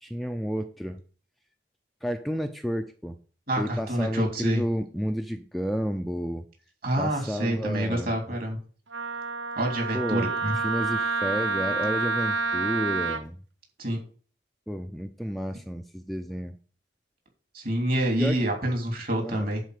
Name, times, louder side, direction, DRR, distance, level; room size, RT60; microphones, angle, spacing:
voice 1, 0.0-1.0 2.0-3.2 3.6-6.4 7.0-8.1 9.9-10.3 10.6-13.4 14.7-16.5 18.2-18.5 19.2-19.5, equal, ahead, 6 dB, 0.5 m, -31 dB
voice 2, 3.5-4.6 6.8-8.6 9.6-10.5 13.8-14.0 17.5-19.6, right 1 dB, 50° right, 2 dB, 3.0 m, -27 dB
Wind instrument woodwind instrument, 8.9-13.2, right 4 dB, 80° right, 0.8 m, -28 dB
10.5 x 4.3 x 6.5 m, 0.40 s
head